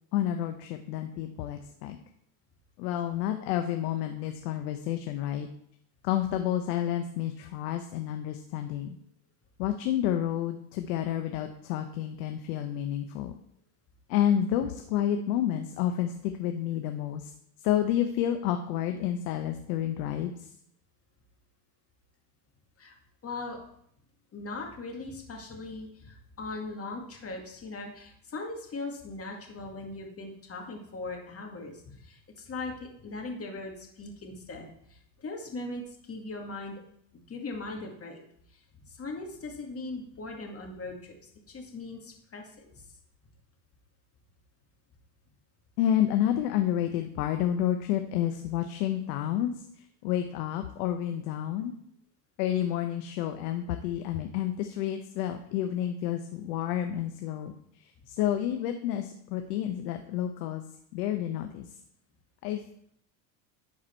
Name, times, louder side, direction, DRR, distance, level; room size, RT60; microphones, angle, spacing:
voice 1, 0.1-2.0 2.8-5.5 6.0-9.0 9.6-13.3 14.1-17.3 17.6-20.5 45.8-49.6 50.0-51.7 52.4-60.6 60.9-61.7 62.4-62.6, left 11 dB, 75° left, 6 dB, 1.0 m, -30 dB
voice 2, 23.2-23.6 24.3-36.8 37.3-38.2 38.5-38.6 38.8-41.2 41.5-42.8, left 3 dB, 30° left, 1 dB, 2.2 m, -39 dB
10.5 x 4.8 x 4.5 m, 0.69 s
supercardioid pair, 105°, 49 cm